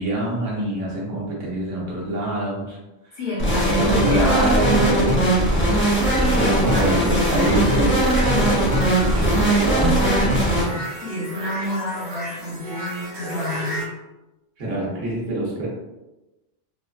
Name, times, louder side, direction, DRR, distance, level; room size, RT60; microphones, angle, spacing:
voice 1, 0.0-2.8 3.0-3.2 3.6-5.4 6.3-8.1 9.0-10.3 10.7-10.9 14.6-15.7, right 1 dB, 80° right, -4 dB, 1.2 m, -25 dB
voice 2, 3.1-4.8 6.1-7.4 8.5-8.8 11.0-13.9, left 1 dB, 55° left, -5 dB, 0.9 m, -29 dB
sound 1, 3.4-10.6, right 1 dB, 10° left, 0.6 m, -19 dB
sound 2, 5.8-13.9, equal, 65° right, 1.1 m, -33 dB
3.2 x 2.2 x 2.2 m, 1.0 s
omnidirectional pair, 1.2 m